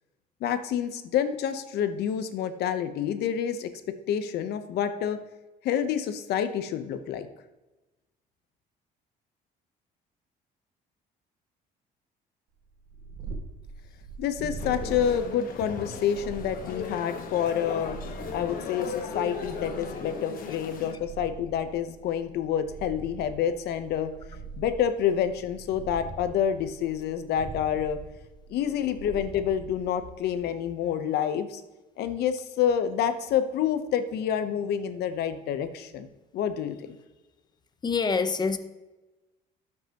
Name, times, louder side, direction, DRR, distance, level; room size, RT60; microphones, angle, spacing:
voice 1, 0.4-3.7 4.1-5.2 5.6-7.3 14.2-18.0 18.3-24.1 24.6-28.0 28.5-31.6 32.0-36.1 36.3-37.0, left 9 dB, 75° left, 0.9 m, -28 dB
Purr, 12.7-30.4, right 4 dB, 90° right, 2.0 m, -43 dB
sound 1, 14.6-20.9, left 5 dB, 55° left, 1.4 m, -37 dB
voice 2, 37.8-38.6, left 5 dB, 25° left, 0.8 m, -26 dB
13.0 x 5.9 x 3.0 m
cardioid pair, 110°, 17 cm